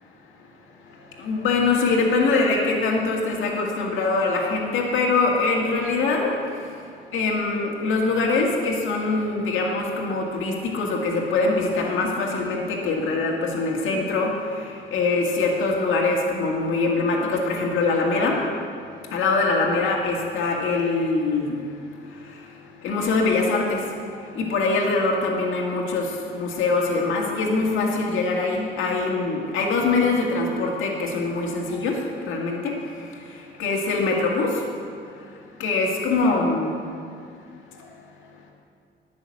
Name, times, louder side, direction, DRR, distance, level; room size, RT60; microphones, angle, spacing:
voice 1, 1.2-6.3 7.1-14.3 14.9-18.4 19.1-21.7 22.8-23.8 24.4-26.1 26.3-32.0 32.3-32.7 33.6-34.5 35.6-36.8, left 3 dB, 85° left, -1 dB, 2.0 m, -23 dB
11.0 x 6.3 x 8.5 m, 2.2 s
cardioid pair, 90°, 20 cm